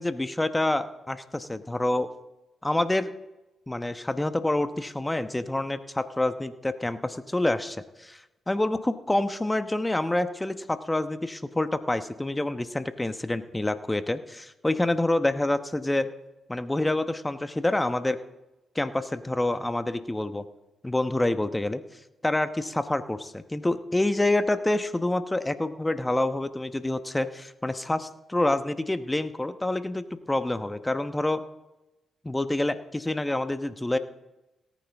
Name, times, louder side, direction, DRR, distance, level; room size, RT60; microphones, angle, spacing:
voice 1, 0.0-2.1 2.6-3.1 3.7-16.1 16.5-18.2 18.7-20.4 20.8-21.8 22.2-31.4 32.2-34.0, left 1 dB, 15° left, 11 dB, 1.0 m, -27 dB
18.0 x 9.4 x 3.5 m, 0.99 s
hypercardioid pair, 45°, 0 cm